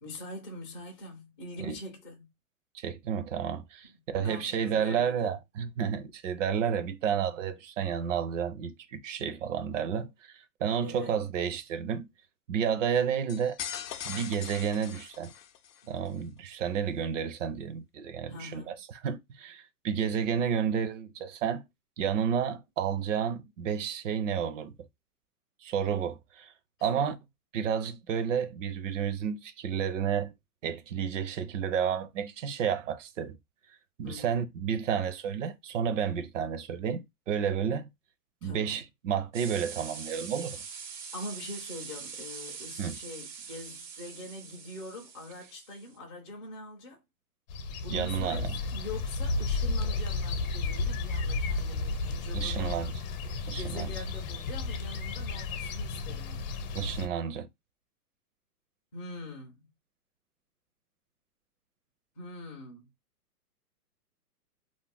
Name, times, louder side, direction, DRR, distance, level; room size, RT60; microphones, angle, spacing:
voice 1, 0.0-2.3 4.1-5.4 10.8-11.2 15.8-16.0 18.3-18.8 26.8-27.2 34.0-34.5 38.4-38.8 41.1-47.0 47.8-52.8 53.5-56.5 58.9-59.7 62.2-62.9, left 1 dB, 20° left, 0.4 m, -43 dB
voice 2, 2.7-12.1 12.5-13.6 14.0-15.3 15.9-21.7 22.0-24.7 25.6-26.5 26.8-27.1 27.5-30.3 30.6-33.4 34.0-37.9 38.4-40.6 42.8-43.0 47.9-48.5 52.3-52.9 53.5-53.9 56.7-57.5, right 7 dB, 55° right, 0.6 m, -31 dB
sound 1, 13.3-15.8, left 9 dB, 90° left, 0.6 m, -40 dB
sound 2, 39.3-46.0, right 6 dB, 80° right, 1.1 m, -43 dB
sound 3, 47.5-57.1, left 3 dB, 60° left, 0.8 m, -33 dB
2.5 x 2.0 x 3.4 m
hypercardioid pair, 140°, 46 cm